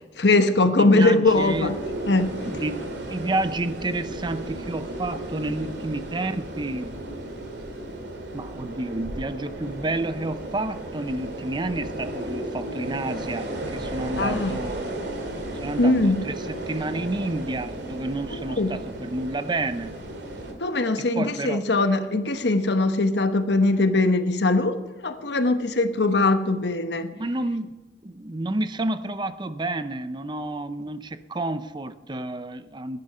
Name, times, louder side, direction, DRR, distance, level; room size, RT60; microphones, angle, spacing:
voice 1, 0.2-1.8 2.1-2.3 14.2-14.5 15.8-16.2 18.3-18.7 20.6-27.1, left 2 dB, 70° left, 9 dB, 1.1 m, -21 dB
voice 2, 0.8-1.7 2.4-6.9 8.3-14.9 15.6-20.0 21.0-21.7 27.1-27.8 28.0-33.0, right 2 dB, 25° right, 12 dB, 0.6 m, -30 dB
sound 1, 1.3-20.5, right 1 dB, 70° right, 2.7 m, -34 dB
15.5 x 10.5 x 5.5 m, 1.2 s
head